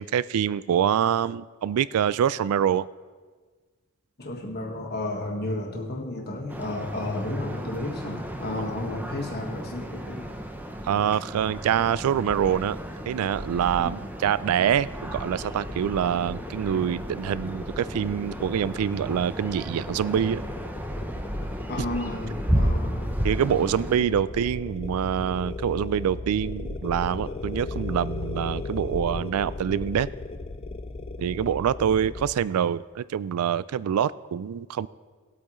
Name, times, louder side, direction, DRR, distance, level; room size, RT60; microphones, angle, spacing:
voice 1, 0.0-2.9 10.8-12.8 13.1-20.4 23.2-30.1 31.2-34.9, right 8 dB, 85° right, 18 dB, 0.3 m, -25 dB
voice 2, 4.2-10.3 13.8-14.0 21.7-23.1 23.4-23.6 23.9-24.1, left 2 dB, 50° left, 0 dB, 1.5 m, -33 dB
sound 1, 6.5-24.0, equal, 10° right, 0.7 m, -33 dB
sound 2, 15.1-32.3, left 3 dB, 25° left, 0.4 m, -37 dB
18.5 x 8.4 x 3.1 m, 1.4 s
head